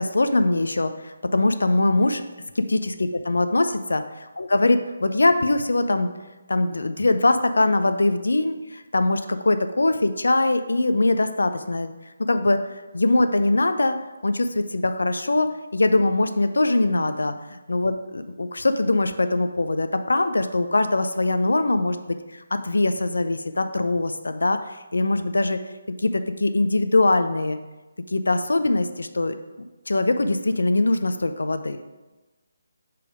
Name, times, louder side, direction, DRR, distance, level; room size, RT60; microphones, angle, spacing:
voice 1, 0.0-2.2 2.6-4.0 4.4-6.1 6.5-11.9 12.3-12.6 12.9-14.0 14.2-25.6 26.0-27.6 28.1-29.3 29.9-31.8, left 2 dB, 90° left, 9 dB, 0.5 m, -22 dB
6.8 x 3.4 x 5.0 m, 1.1 s
hypercardioid pair, 165°, 0 cm